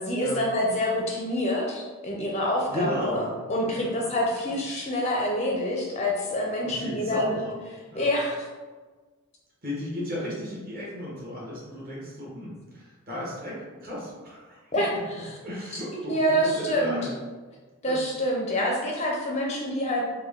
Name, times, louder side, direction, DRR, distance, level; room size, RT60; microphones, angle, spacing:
voice 1, 0.0-7.4 8.0-8.5 14.7-15.3 16.1-17.0 17.8-20.0, equal, 30° left, -2 dB, 0.5 m, -27 dB
voice 2, 2.7-4.1 4.4-4.5 6.6-7.5 7.9-8.0 9.6-14.7 15.4-17.1 17.8-18.0, equal, 40° right, -6 dB, 1.2 m, -35 dB
4.4 x 2.2 x 3.6 m, 1.3 s
head